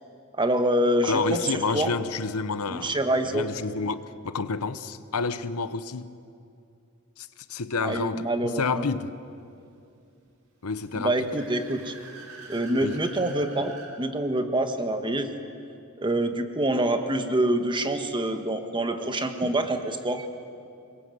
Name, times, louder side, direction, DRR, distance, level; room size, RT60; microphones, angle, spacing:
voice 1, 0.3-1.9 2.7-3.5 7.8-8.8 10.9-11.9 12.5-15.3 16.0-20.3, right 1 dB, 20° right, 1.5 m, -26 dB
voice 2, 1.0-3.0 3.3-6.1 7.2-9.1 10.6-11.3 12.8-13.0, left 4 dB, 85° left, 0.9 m, -29 dB
Car / Accelerating revving vroom, 10.7-13.9, right 3 dB, 75° right, 4.2 m, -46 dB
24.5 x 22.0 x 7.9 m
head